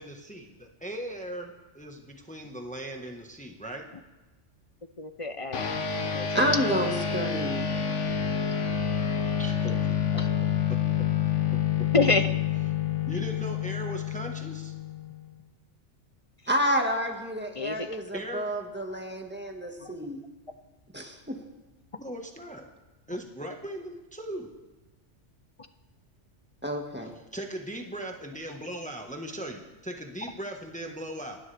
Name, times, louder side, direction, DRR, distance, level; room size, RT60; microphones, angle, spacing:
voice 1, 0.0-3.8 9.4-10.2 13.1-14.7 18.1-18.5 22.0-22.7 23.1-24.5 27.3-31.4, right 1 dB, 5° left, 2 dB, 1.3 m, -38 dB
voice 2, 5.0-5.7 6.1-6.4 10.2-10.3 11.9-12.4 17.6-18.0 19.8-19.9, left 3 dB, 35° left, 9 dB, 0.6 m, -27 dB
sound 1, 5.5-15.3, left 8 dB, 80° left, 1.4 m, -28 dB
voice 3, 6.3-7.7 16.5-20.2 20.9-21.4 26.6-27.1, equal, 10° right, 2 dB, 1.7 m, -29 dB
28.0 x 12.0 x 3.4 m, 1.1 s
omnidirectional pair, 1.2 m